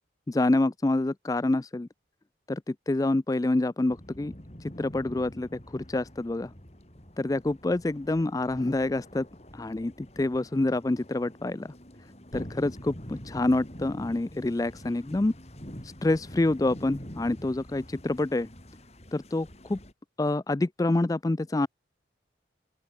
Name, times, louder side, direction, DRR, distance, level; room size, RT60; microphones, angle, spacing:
voice 1, 0.3-1.9 2.5-4.3 4.6-6.5 7.2-9.3 9.5-11.7 12.3-15.3 15.8-18.5 19.1-19.8 20.2-21.7, left 2 dB, 20° left, 0.4 m, -27 dB
sound 1, 3.9-19.9, equal, 35° left, 5.1 m, -46 dB
open air
head